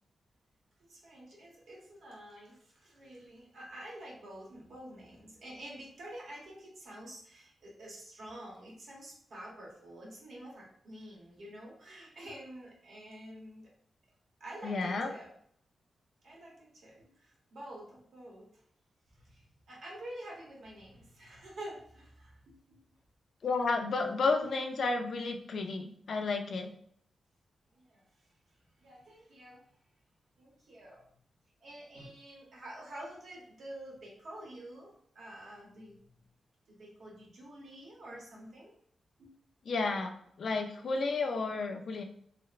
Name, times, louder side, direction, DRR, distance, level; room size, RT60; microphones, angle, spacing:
voice 1, 0.9-13.7 14.4-15.3 16.2-18.5 19.1-22.8 24.4-24.5 27.7-28.3 28.8-29.6 30.4-31.0 31.6-35.9 36.7-38.7 39.2-39.4, right 1 dB, 75° right, -3 dB, 0.9 m, -48 dB
voice 2, 14.6-15.1 23.4-26.7 39.7-40.1 40.4-42.0, left 3 dB, 65° left, 4 dB, 0.3 m, -32 dB
2.8 x 2.0 x 2.4 m, 0.65 s
wide cardioid pair, 105°, 0 cm